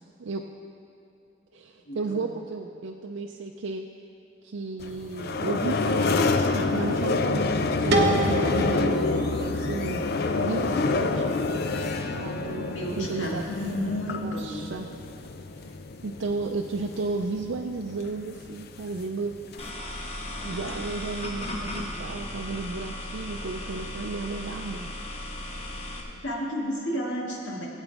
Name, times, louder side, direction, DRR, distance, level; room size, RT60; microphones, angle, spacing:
voice 1, 0.2-0.5 1.5-3.9 4.4-7.5 7.8-9.1 9.4-10.0 10.4-14.9 16.0-19.3 20.4-24.9, right 3 dB, 75° right, 2 dB, 0.5 m, -33 dB
voice 2, 1.9-2.3 12.5-14.7 26.1-27.7, equal, 80° left, -4 dB, 2.1 m, -32 dB
sound 1, 4.8-19.7, left 3 dB, 55° left, 0.5 m, -28 dB
sound 2, 7.9-10.7, right 2 dB, 60° right, 0.9 m, -28 dB
sound 3, 19.6-26.0, left 1 dB, 35° left, 1.1 m, -36 dB
16.5 x 8.1 x 3.4 m, 2.8 s
head